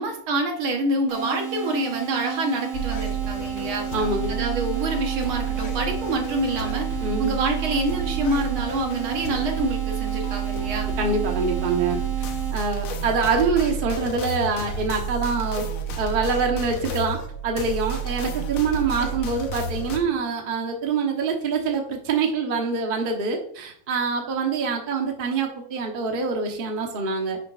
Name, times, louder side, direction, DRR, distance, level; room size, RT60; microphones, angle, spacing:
voice 1, 0.0-3.8 4.3-6.9 7.2-10.9, right 2 dB, 75° right, 3 dB, 2.1 m, -27 dB
sound 1, 1.1-12.5, right 8 dB, 55° right, 1.8 m, -32 dB
sound 2, 2.7-20.0, right 5 dB, 80° left, 1.9 m, -30 dB
voice 2, 3.9-4.5 7.0-7.4 11.0-12.0 12.5-15.6 16.0-17.2 17.4-27.4, right 4 dB, 35° right, 2 dB, 1.0 m, -25 dB
10.0 x 6.9 x 2.5 m, 0.64 s
omnidirectional pair, 2.3 m